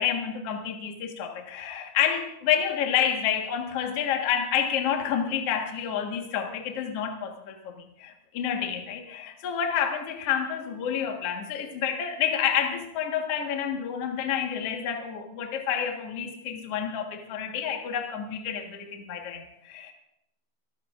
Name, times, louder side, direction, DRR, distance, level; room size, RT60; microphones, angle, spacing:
voice 1, 0.0-19.9, left 8 dB, 55° left, 2 dB, 1.8 m, -29 dB
27.0 x 13.5 x 2.5 m, 0.79 s
omnidirectional pair, 4.8 m